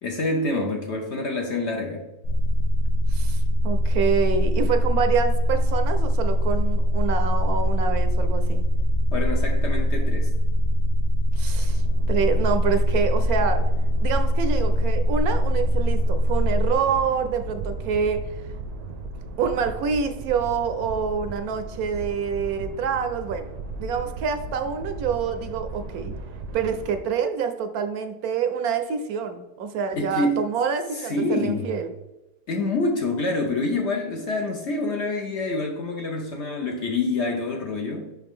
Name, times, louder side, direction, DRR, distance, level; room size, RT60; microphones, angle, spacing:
voice 1, 0.0-2.1 9.1-10.3 30.0-30.5 30.9-31.7 32.5-38.1, left 2 dB, 55° left, 2 dB, 0.8 m, -27 dB
sound 1, 2.2-16.7, equal, 85° left, 1.2 m, -22 dB
voice 2, 3.1-8.6 11.4-11.8 12.1-13.6 14.0-18.2 19.4-23.5 23.8-26.1 26.5-31.9, right 6 dB, 70° right, 8 dB, 1.0 m, -26 dB
sound 2, 11.6-27.0, right 2 dB, 90° right, 1.4 m, -36 dB
5.8 x 5.3 x 3.6 m, 0.99 s
omnidirectional pair, 1.7 m